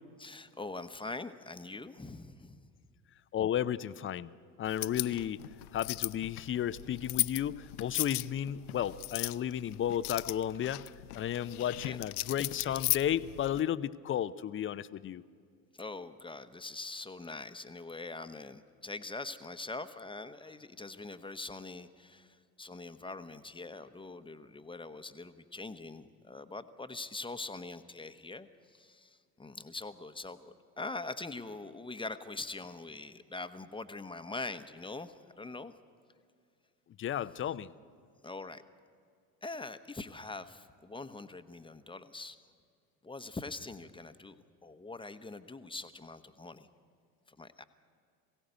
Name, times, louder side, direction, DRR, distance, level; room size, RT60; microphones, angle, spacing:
voice 1, 0.2-2.7 5.1-5.2 11.6-12.0 15.7-35.7 37.4-37.5 38.2-38.6 39.4-42.4 43.0-46.7 47.3-47.6, left 3 dB, 10° left, 10 dB, 1.0 m, -43 dB
voice 2, 3.3-4.3 4.6-5.4 5.7-10.9 11.1-15.2 37.0-37.7, left 10 dB, 25° left, 16 dB, 0.6 m, -33 dB
sound 1, 4.7-13.6, left 20 dB, 70° left, 0.5 m, -37 dB
22.0 x 16.5 x 8.1 m, 2.2 s
figure-of-eight pair, 65°, 47 cm